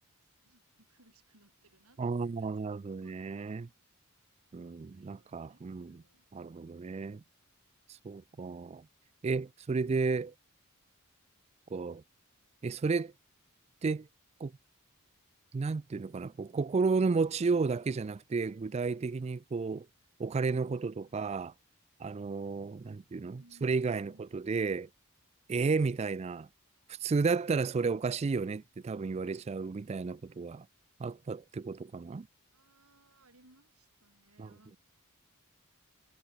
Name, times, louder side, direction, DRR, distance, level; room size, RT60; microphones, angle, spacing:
voice 1, 0.2-2.0 2.2-3.5 4.6-6.3 21.0-21.2 22.8-22.9 23.3-24.3 32.5-34.8, right 1 dB, 85° right, 6.7 m, -65 dB
voice 2, 2.0-3.7 4.5-6.0 6.3-7.2 8.0-8.9 9.2-10.3 11.7-12.0 12.6-13.1 13.8-14.1 14.4-14.5 15.5-19.9 20.2-21.5 22.0-24.9 25.5-26.5 26.9-30.7 31.0-32.3 34.4-34.5, right 4 dB, 30° right, 0.3 m, -32 dB
head